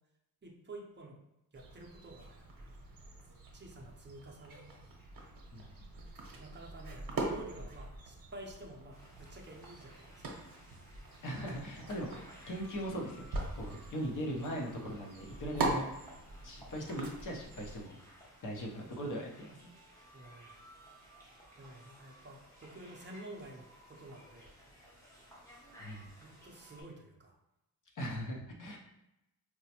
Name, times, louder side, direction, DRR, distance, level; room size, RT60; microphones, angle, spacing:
voice 1, 0.4-1.2 1.5-2.8 3.5-4.6 6.4-10.4 20.1-20.6 21.6-24.5 26.2-27.3, right 2 dB, 30° right, -1 dB, 0.6 m, -50 dB
sound 1, 1.5-17.8, right 2 dB, 65° right, 0.8 m, -43 dB
sound 2, 8.9-26.8, equal, 10° left, 0.8 m, -57 dB
voice 2, 11.2-13.3 13.5-15.9 16.4-18.0 18.4-19.6 25.8-26.1 27.9-28.8, equal, 55° left, -1 dB, 0.8 m, -39 dB
4.6 x 2.1 x 2.8 m, 0.89 s
wide cardioid pair, 150°, 38 cm